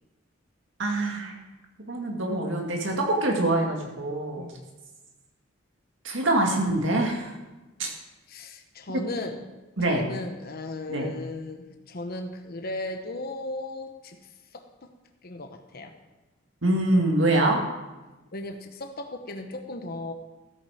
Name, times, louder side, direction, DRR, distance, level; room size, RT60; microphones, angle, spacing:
voice 1, 0.8-1.4 1.9-4.5 6.0-7.3 7.8-7.9 9.8-10.1 10.9-11.1 16.6-17.6, right 2 dB, 70° right, 1 dB, 2.2 m, -25 dB
voice 2, 8.3-9.4 9.8-14.9 15.2-15.9 18.3-20.1, left 2 dB, 50° left, 5 dB, 1.0 m, -36 dB
14.0 x 8.7 x 4.9 m, 1.1 s
head